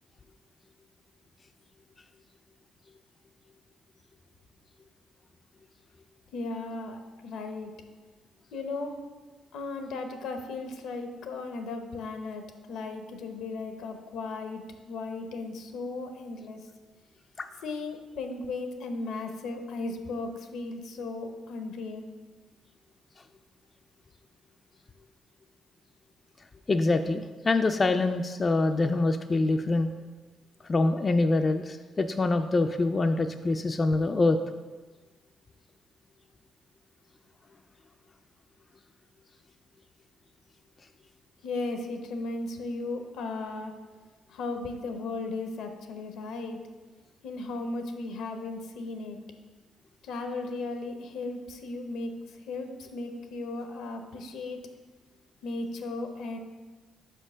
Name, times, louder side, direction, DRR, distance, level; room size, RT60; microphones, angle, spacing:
voice 1, 6.3-7.7 8.5-9.0 9.5-16.6 17.6-22.1 41.4-43.7 44.3-46.6 47.2-49.2 50.0-54.6 55.4-56.4, left 3 dB, 80° left, 6 dB, 0.7 m, -36 dB
voice 2, 26.7-29.9 30.7-34.4, left 2 dB, 30° left, 7 dB, 0.3 m, -25 dB
5.0 x 4.5 x 6.0 m, 1.3 s
cardioid pair, 90°, 0 cm